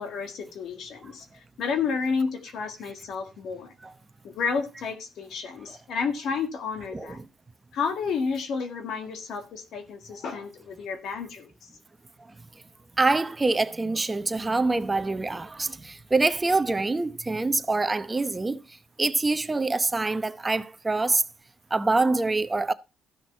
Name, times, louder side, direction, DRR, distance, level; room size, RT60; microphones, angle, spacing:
voice 1, 0.0-3.7 4.2-7.2 7.7-11.7, left 5 dB, 75° left, 1.8 m, -31 dB
voice 2, 13.0-18.6 19.0-21.2 21.7-22.7, right 3 dB, 20° right, 0.8 m, -25 dB
14.0 x 6.1 x 4.4 m
cardioid pair, 90°, 0 cm